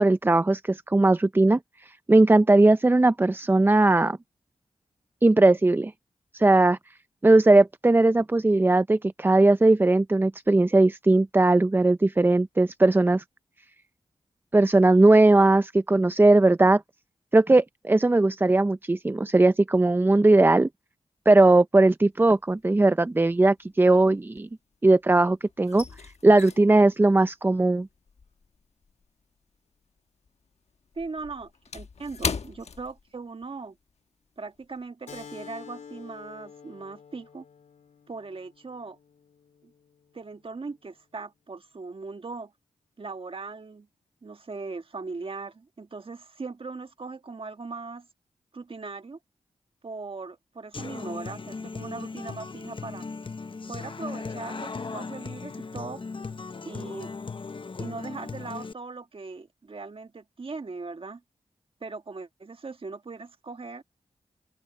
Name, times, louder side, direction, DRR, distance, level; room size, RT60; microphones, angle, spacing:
voice 1, 0.0-4.2 5.2-5.9 6.3-6.8 7.2-13.2 14.5-16.8 17.3-20.7 21.3-24.5 24.8-25.8 26.2-27.9, right 2 dB, 15° right, 0.4 m, -19 dB
sound 1, 22.2-22.8 23.0-25.0 25.3-30.0 30.3-33.6 33.9-34.1 34.5-34.8, left 5 dB, 60° left, 1.1 m, -38 dB
voice 2, 30.9-33.8 34.4-37.4 38.1-39.0 39.6-39.7 40.1-42.5 43.0-43.9 44.2-48.1 48.5-49.2 49.8-53.0 53.7-56.0 56.6-57.1 57.8-61.2 61.8-63.8, right 4 dB, 45° right, 1.7 m, -39 dB
Keyboard (musical), 35.1-40.2, left 6 dB, 85° left, 4.6 m, -48 dB
Human voice / Acoustic guitar, 50.7-58.7, left 4 dB, 45° left, 0.8 m, -37 dB
open air
cardioid pair, 60°, 12 cm